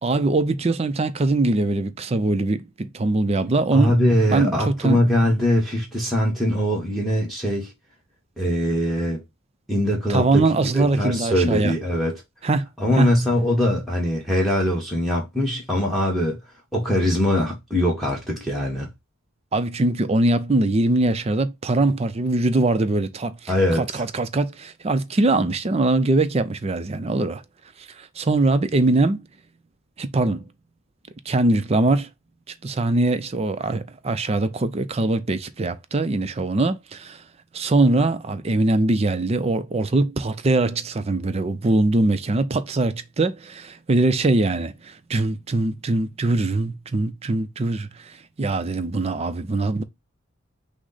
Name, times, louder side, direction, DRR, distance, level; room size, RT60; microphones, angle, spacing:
voice 1, 0.0-3.9 4.3-5.0 10.1-11.7 12.4-12.7 13.0-13.1 19.5-27.4 27.8-29.3 30.0-30.4 31.3-32.1 32.6-37.2 37.5-49.8, right 2 dB, 30° right, 0.4 m, -22 dB
voice 2, 3.7-7.7 8.4-9.2 9.7-12.2 12.8-16.4 16.7-18.9 23.5-24.0, left 1 dB, ahead, 1.0 m, -22 dB
6.1 x 2.1 x 3.9 m
head